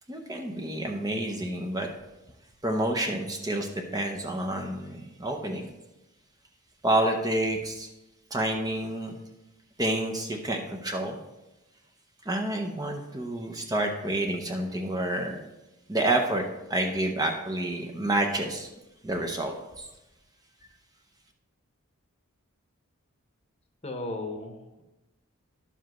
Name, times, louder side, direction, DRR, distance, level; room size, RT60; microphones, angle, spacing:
voice 1, 0.1-1.9 2.6-5.7 6.8-7.9 8.3-9.2 9.8-11.2 12.2-15.4 15.9-16.4 16.7-18.7 19.0-19.9, right 1 dB, 15° right, 2 dB, 0.7 m, -29 dB
voice 2, 23.8-24.8, left 2 dB, 30° left, 4 dB, 1.0 m, -35 dB
11.5 x 7.2 x 3.1 m, 1.0 s
head